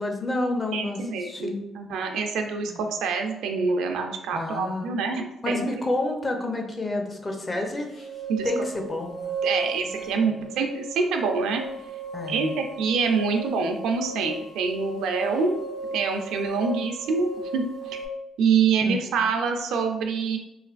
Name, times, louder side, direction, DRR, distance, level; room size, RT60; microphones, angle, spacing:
voice 1, 0.0-1.6 2.7-2.8 4.3-5.0 5.4-7.9 8.4-9.2 12.1-12.5 18.8-19.1, left 2 dB, 25° left, 3 dB, 0.6 m, -29 dB
voice 2, 0.7-5.8 8.3-8.5 9.4-11.6 12.3-15.6 15.9-18.0 18.4-20.4, right 5 dB, 85° right, 4 dB, 0.4 m, -26 dB
sound 1, 7.7-18.1, right 2 dB, 80° left, 1.3 m, -35 dB
3.2 x 3.0 x 2.4 m, 0.90 s
cardioid pair, 90°, 0 cm